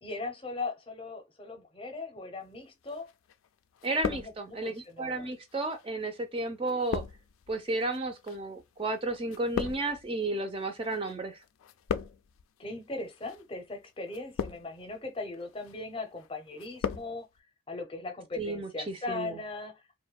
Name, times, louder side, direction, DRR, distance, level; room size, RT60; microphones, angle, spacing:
voice 1, 0.0-3.1 4.1-5.3 12.6-17.3 17.7-20.0, left 3 dB, 25° left, 0.6 m, -39 dB
sound 1, 2.9-3.5 3.7-4.8 5.5-11.1 11.4-12.4 13.1-13.4 14.1-14.9 15.3-15.8 16.2-17.1 17.4-17.5, left 6 dB, 90° left, 0.3 m, -37 dB
voice 2, 3.8-7.0 7.5-11.4 18.4-19.4, right 2 dB, 25° right, 0.4 m, -33 dB
2.6 x 2.1 x 2.3 m
head